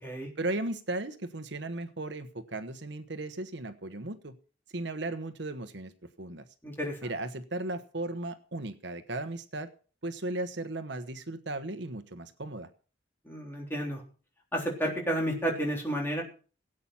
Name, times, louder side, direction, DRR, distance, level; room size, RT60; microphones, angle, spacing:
voice 1, 0.4-4.3 4.7-5.9 6.2-6.4 7.0-9.7 10.0-12.7, right 2 dB, 65° right, 9 dB, 1.1 m, -36 dB
voice 2, 6.6-7.0 13.3-14.0 14.5-16.2, right 1 dB, 10° left, -1 dB, 3.6 m, -31 dB
17.5 x 8.7 x 5.7 m, 0.39 s
head